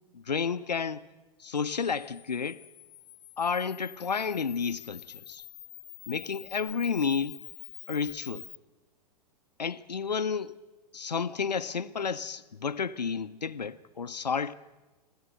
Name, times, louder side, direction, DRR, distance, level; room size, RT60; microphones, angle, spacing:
voice 1, 0.1-1.1 1.4-2.6 3.4-5.4 6.1-7.4 7.9-8.4 9.6-10.6 10.9-14.5, left 6 dB, 80° left, 0.7 m, -31 dB
Camera, 1.5-8.6, left 15 dB, 30° left, 0.9 m, -48 dB
28.0 x 12.0 x 8.1 m
figure-of-eight pair, 105°, 21 cm